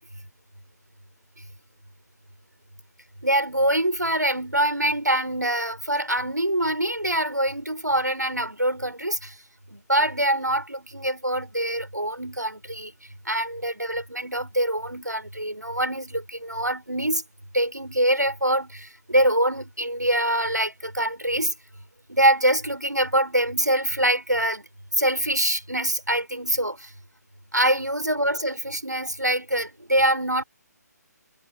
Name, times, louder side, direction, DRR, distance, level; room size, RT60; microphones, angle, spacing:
voice 1, 3.2-9.3 9.7-12.9 13.2-17.2 17.5-21.5 22.1-24.7 24.9-26.9 27.5-30.4, right 1 dB, 85° right, 5.1 m, -24 dB
figure-of-eight pair, 140°, 9 cm